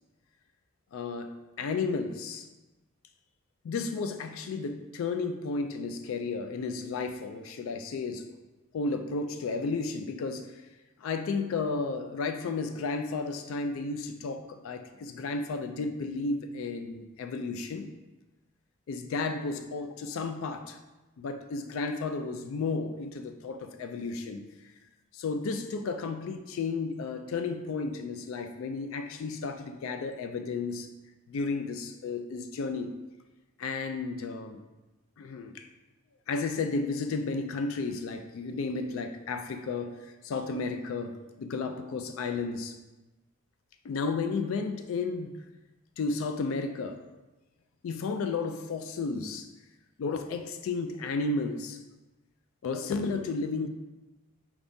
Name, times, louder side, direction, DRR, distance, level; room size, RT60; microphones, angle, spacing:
voice 1, 0.9-2.5 3.6-8.3 8.7-10.5 11.0-17.9 18.9-20.8 21.2-24.4 25.1-30.9 31.3-32.9 33.6-34.6 35.2-35.7 36.3-42.8 43.8-45.3 46.0-47.0 47.8-49.5 50.0-51.8 52.6-53.7, left 4 dB, 75° left, 7 dB, 0.3 m, -33 dB
4.8 x 3.5 x 2.6 m, 1.1 s
head